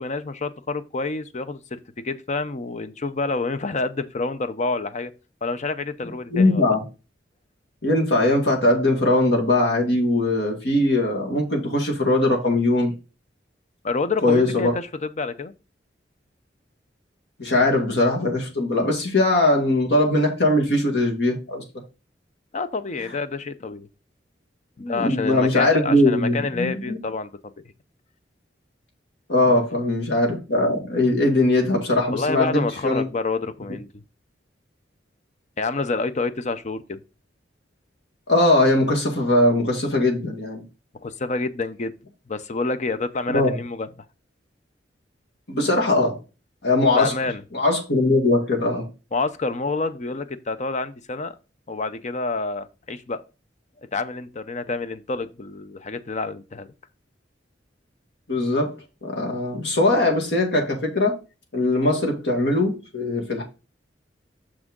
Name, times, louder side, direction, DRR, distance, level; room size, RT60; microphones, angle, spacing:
voice 1, 0.0-5.1 5.4-6.7 13.8-15.5 22.5-23.9 24.8-27.3 32.1-34.0 35.6-37.0 41.0-41.9 42.3-44.1 46.9-47.4 49.1-51.3 51.7-53.2 53.9-56.7, left 3 dB, 40° left, 0.6 m, -28 dB
voice 2, 6.3-6.8 7.8-12.9 14.2-14.7 17.4-21.6 24.8-27.0 29.3-33.0 38.3-40.6 43.3-43.5 45.5-46.2 46.6-47.1 47.5-48.9 58.3-58.7 59.0-61.2 61.5-63.4, left 2 dB, 70° left, 2.1 m, -20 dB
6.3 x 6.1 x 3.7 m
head